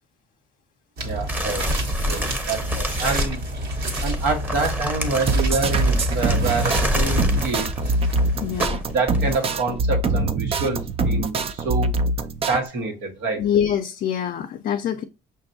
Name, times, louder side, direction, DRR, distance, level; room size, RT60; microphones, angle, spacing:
sound 1, 1.0-9.1, equal, 65° right, 1.4 m, -29 dB
voice 1, 1.0-1.6 2.1-3.4 4.0-7.9 8.3-11.9 12.5-13.5, right 3 dB, 90° right, 1.4 m, -27 dB
sound 2, 1.3-9.5, equal, 10° right, 0.8 m, -28 dB
sound 3, 5.1-12.6, right 2 dB, 35° right, 0.4 m, -23 dB
voice 2, 8.4-8.8 13.4-15.0, left 9 dB, 55° left, 0.5 m, -24 dB
5.7 x 2.6 x 2.6 m
cardioid pair, 110°, 17 cm